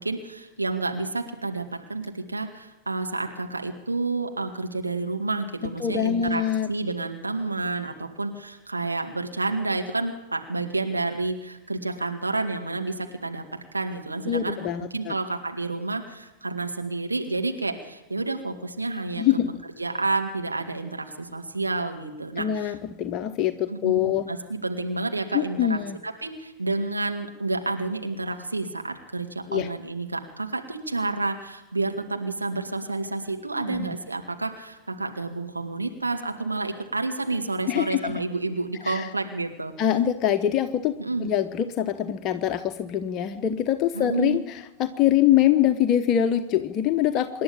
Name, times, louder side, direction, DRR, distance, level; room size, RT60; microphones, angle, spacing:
voice 1, 0.0-6.4 6.7-13.4 13.7-19.2 19.8-22.8 23.7-39.7 41.0-41.3 43.9-44.4, right 3 dB, 80° right, 4 dB, 2.1 m, -30 dB
voice 2, 5.8-6.7 14.3-15.1 19.2-19.5 22.4-24.3 25.3-26.0 29.5-29.7 33.7-33.9 37.7-38.1 38.8-39.1 39.8-40.9 41.2-47.4, left 10 dB, 35° left, 8 dB, 1.0 m, -24 dB
27.0 x 11.0 x 8.8 m, 0.99 s
figure-of-eight pair, 90°, 0 cm